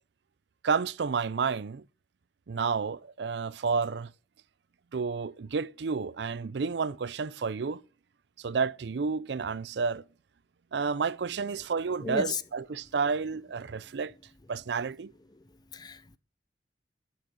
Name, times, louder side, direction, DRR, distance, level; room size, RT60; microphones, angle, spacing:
voice 1, 0.6-1.8 2.5-4.1 4.9-7.8 8.4-10.0 10.7-14.1 14.5-15.1, right 5 dB, 75° right, 0.5 m, -30 dB
voice 2, 12.0-12.4 13.7-13.9 15.3-15.4 15.7-16.2, left 4 dB, 25° left, 0.6 m, -35 dB
12.0 x 6.3 x 6.9 m
head